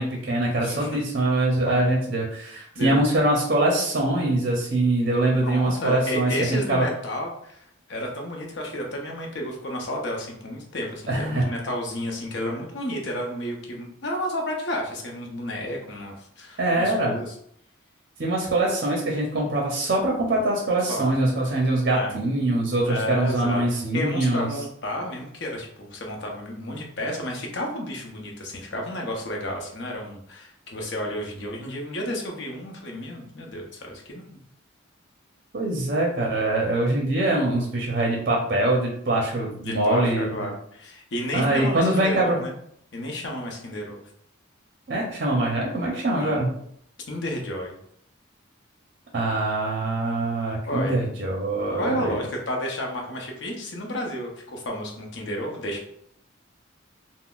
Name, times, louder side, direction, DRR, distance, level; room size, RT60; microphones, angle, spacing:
voice 1, 0.0-6.9 11.1-11.5 16.6-17.1 18.2-24.5 35.5-40.3 41.3-42.4 44.9-46.5 49.1-52.2, right 2 dB, 50° right, -2 dB, 0.5 m, -23 dB
voice 2, 0.6-1.0 1.6-1.8 2.7-3.0 5.4-17.3 20.9-21.1 21.9-22.2 22.9-23.6 23.9-34.2 39.6-42.5 42.9-44.0 46.2-46.4 47.1-47.8 49.3-49.4 50.7-51.1 51.8-55.9, left 1 dB, 60° left, 1 dB, 0.7 m, -31 dB
3.8 x 2.0 x 2.3 m, 0.68 s
head